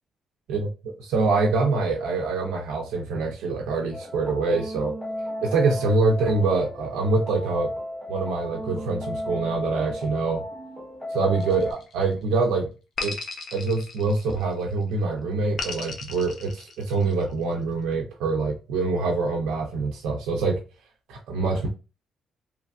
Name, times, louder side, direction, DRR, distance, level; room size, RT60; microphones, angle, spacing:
voice 1, 0.5-4.9 5.4-7.7 8.1-10.4 11.1-12.7 13.0-13.2 13.5-20.6 21.1-21.7, right 3 dB, 90° right, 0.5 m, -25 dB
sound 1, 3.9-11.7, equal, ahead, 0.6 m, -34 dB
sound 2, 11.4-12.2 13.0-14.6 15.6-17.2, left 4 dB, 60° left, 0.6 m, -36 dB
3.0 x 2.3 x 2.4 m
cardioid pair, 90°, 0 cm